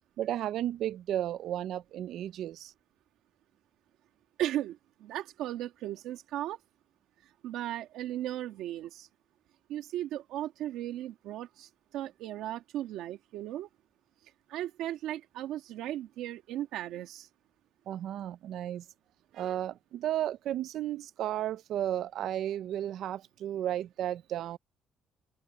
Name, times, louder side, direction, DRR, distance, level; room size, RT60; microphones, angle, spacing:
voice 1, 0.2-2.7 17.9-18.8 19.3-24.6, right 11 dB, 55° right, 0.5 m, -33 dB
voice 2, 4.4-6.6 7.4-9.1 9.7-13.7 14.5-17.3, right 13 dB, 70° right, 2.0 m, -36 dB
cardioid pair, 175°, 0 cm